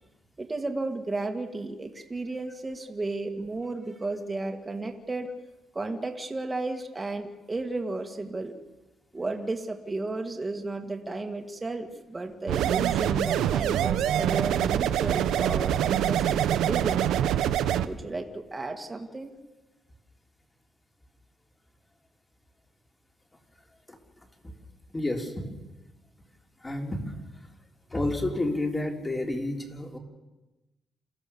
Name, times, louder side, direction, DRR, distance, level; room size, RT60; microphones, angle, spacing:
voice 1, 0.4-5.3 5.7-8.6 9.1-17.1 17.8-19.3, right 2 dB, 20° right, 3 dB, 2.2 m, -33 dB
sound 1, 12.5-17.9, right 11 dB, 90° right, 0.9 m, -25 dB
voice 2, 24.9-25.5 26.6-27.1 27.9-30.0, left 1 dB, 15° left, 2 dB, 3.7 m, -30 dB
28.0 x 15.5 x 7.2 m, 1.1 s
cardioid pair, 110°, 0 cm